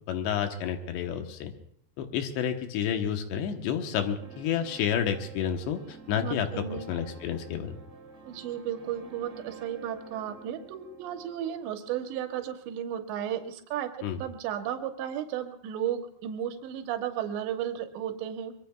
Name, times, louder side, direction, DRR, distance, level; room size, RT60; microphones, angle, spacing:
voice 1, 0.1-1.5 2.0-7.8 14.0-14.2, left 8 dB, 80° left, 5 dB, 3.3 m, -30 dB
sound 1, 4.2-12.4, right 4 dB, 65° right, 1.1 m, -49 dB
voice 2, 6.2-6.9 8.2-13.9 14.2-18.5, right 10 dB, 85° right, 5 dB, 3.4 m, -34 dB
24.0 x 22.5 x 2.3 m, 0.66 s
omnidirectional pair, 4.9 m